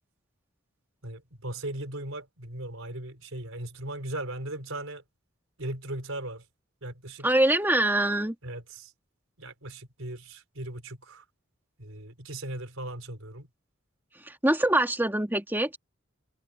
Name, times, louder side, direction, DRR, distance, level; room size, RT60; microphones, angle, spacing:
voice 1, 1.0-5.0 5.6-6.4 6.8-7.3 8.4-8.9 9.4-11.2 11.8-13.5, right 1 dB, 85° right, 4.4 m, -38 dB
voice 2, 7.2-8.3 14.2-15.8, right 1 dB, 10° right, 2.1 m, -24 dB
head